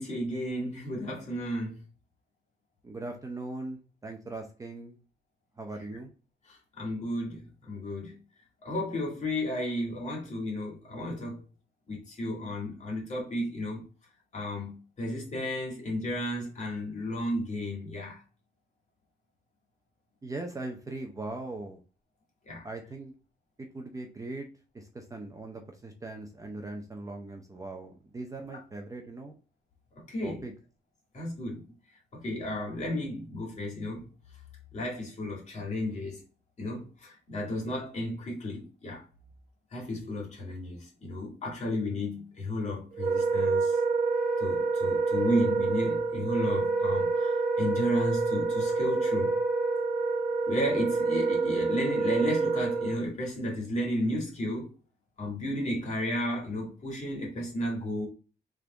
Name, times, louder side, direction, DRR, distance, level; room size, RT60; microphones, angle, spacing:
voice 1, 0.0-1.8 6.5-8.2 8.6-11.4 11.9-13.8 14.3-18.2 22.4-22.7 30.1-30.4 31.1-31.7 32.1-34.0 34.7-36.2 36.6-39.0 39.7-43.8 44.4-49.4 50.5-54.7 55.2-58.1, left 1 dB, 40° left, 2.0 m, -33 dB
voice 2, 2.8-5.0 5.6-6.1 20.2-21.8 22.6-23.1 23.6-24.5 24.7-29.3 30.2-30.5, right 2 dB, 20° right, 0.5 m, -40 dB
Wind instrument woodwind instrument, 42.9-53.0, right 4 dB, 55° right, 1.0 m, -27 dB
3.5 x 3.5 x 3.8 m
wide cardioid pair, 155°, 17 cm